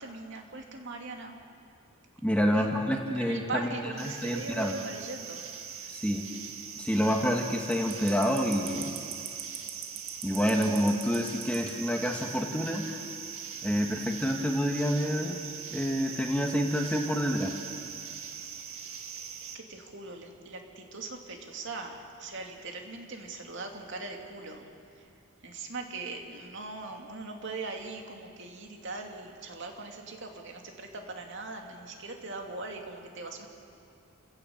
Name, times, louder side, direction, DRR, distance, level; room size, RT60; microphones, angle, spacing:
voice 1, 0.0-1.4 2.5-5.4 5.8-6.0 19.4-24.7 24.9-25.0 25.4-33.5, right 3 dB, 55° right, 2 dB, 2.6 m, -40 dB
voice 2, 2.2-3.7 4.0-4.8 5.9-6.2 6.8-8.9 10.2-13.0 13.6-15.4 15.7-17.5, equal, 5° left, 2 dB, 1.6 m, -28 dB
sound 1, 4.0-19.5, right 7 dB, 75° right, 2.0 m, -41 dB
29.5 x 16.5 x 7.2 m, 2.4 s
head